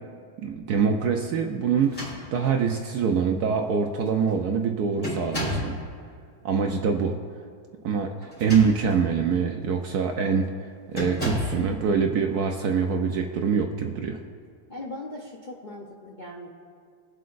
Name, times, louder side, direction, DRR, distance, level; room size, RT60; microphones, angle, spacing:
voice 1, 0.4-5.8 6.4-7.2 7.8-8.1 8.4-10.5 10.9-14.2, right 6 dB, 65° right, 3 dB, 1.1 m, -24 dB
sound 1, 1.8-2.7 3.5-3.6 4.0-4.4 5.0-5.8 8.2-9.1 9.6-9.8 10.9-11.6, equal, 25° left, 3.2 m, -32 dB
voice 2, 14.7-16.5, left 1 dB, 50° left, -3 dB, 0.5 m, -39 dB
23.0 x 7.7 x 2.5 m, 2.2 s
omnidirectional pair, 2.0 m